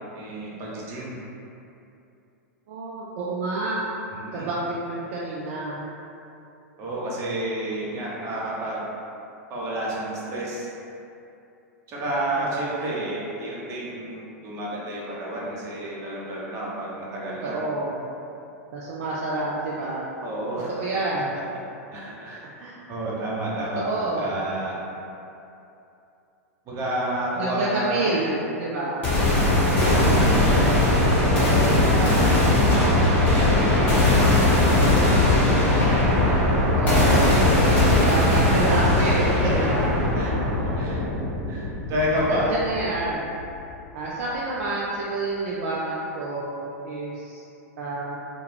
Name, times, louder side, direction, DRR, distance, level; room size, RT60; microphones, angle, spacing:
voice 1, 0.1-1.1 4.1-4.5 6.8-8.9 9.5-10.7 11.9-17.6 20.2-20.8 21.1-21.2 21.9-22.4 22.9-24.7 26.7-28.2 30.0-32.8 33.3-35.8 36.1-36.5 37.4-37.5 39.1-39.7 40.1-41.0 41.5-42.5, right 1 dB, 40° right, -6 dB, 0.8 m, -30 dB
voice 2, 2.7-3.8 4.3-5.9 12.4-12.8 17.4-18.0 18.7-20.0 20.8-21.3 22.5-22.8 23.8-24.3 27.4-29.0 36.8-37.5 37.9-40.0 42.3-43.5 43.9-47.4 47.8-48.2, right 2 dB, 60° right, -6 dB, 0.4 m, -28 dB
sound 1, 29.0-43.0, left 1 dB, 20° left, 1.0 m, -19 dB
2.3 x 2.1 x 3.2 m, 2.8 s
hypercardioid pair, 110°, 8 cm